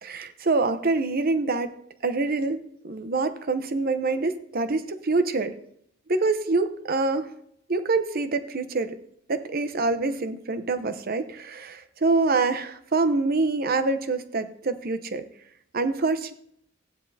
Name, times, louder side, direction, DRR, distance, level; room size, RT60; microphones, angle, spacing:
voice 1, 0.0-1.7 2.0-2.6 2.8-5.6 6.1-7.3 7.7-9.0 9.3-15.2 15.7-16.3, right 3 dB, 50° right, 9 dB, 0.8 m, -25 dB
15.5 x 9.8 x 2.8 m, 0.69 s
head